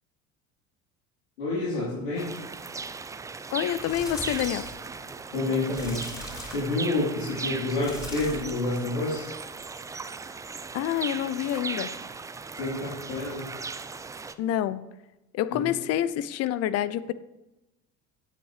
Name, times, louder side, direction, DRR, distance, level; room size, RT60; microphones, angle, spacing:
voice 1, 1.4-2.3 5.3-6.1 6.5-9.3 12.5-13.5 15.5-15.7, left 2 dB, 70° left, -8 dB, 3.7 m, -29 dB
sound 1, 2.2-14.4, right 4 dB, 10° right, 0.4 m, -38 dB
voice 2, 3.5-4.7 10.7-11.9 14.4-14.8 15.3-17.1, left 11 dB, 40° left, 16 dB, 0.7 m, -27 dB
sound 2, 3.6-4.8 5.7-6.8 7.8-8.6 9.0-9.3 10.9-11.0, left 1 dB, 10° left, 4.5 m, -40 dB
17.0 x 8.8 x 3.3 m, 0.99 s
figure-of-eight pair, 65°, 40 cm